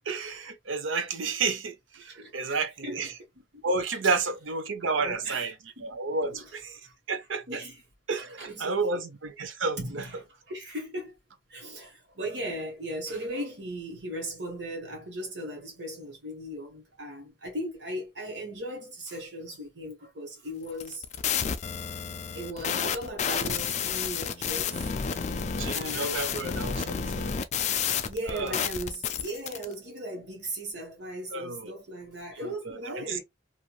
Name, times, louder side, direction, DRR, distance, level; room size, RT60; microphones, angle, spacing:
voice 1, 0.1-3.1 3.6-5.5 5.8-6.8 7.1-7.6 8.1-9.8 25.6-27.3 28.3-28.5 31.3-31.7 32.4-33.2, right 4 dB, 80° right, 0.6 m, -31 dB
voice 2, 2.0-2.5 2.8-3.2 3.5-3.6 4.0-4.1 5.0-6.0 6.2-6.5 6.8-6.9 7.5-7.8 8.1-9.0 9.8-11.1 11.5-21.1 22.3-24.9 25.7-26.2 26.5-27.3 28.1-33.2, right 1 dB, 60° right, 1.2 m, -38 dB
sound 1, 20.7-29.7, left 7 dB, 35° left, 0.3 m, -30 dB
3.1 x 2.5 x 2.3 m
head